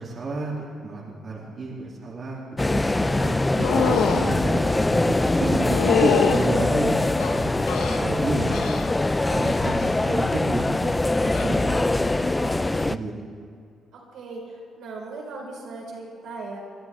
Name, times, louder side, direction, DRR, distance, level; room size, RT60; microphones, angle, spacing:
voice 1, 0.0-3.1 3.6-7.5 7.9-8.6 9.3-13.2, right 2 dB, 50° right, -5 dB, 2.8 m, -31 dB
sound 1, 2.6-13.0, left 2 dB, 15° left, 0.4 m, -23 dB
voice 2, 3.0-3.4 3.8-4.0 13.9-16.6, right 3 dB, 80° right, -3 dB, 4.5 m, -38 dB
sound 2, 3.6-4.3 5.7-6.4 7.2-8.0 8.5-8.9 9.3-9.7 11.3-11.5, left 6 dB, 85° left, 1.0 m, -25 dB
22.5 x 12.5 x 3.6 m, 2.4 s
cardioid pair, 90°, 0 cm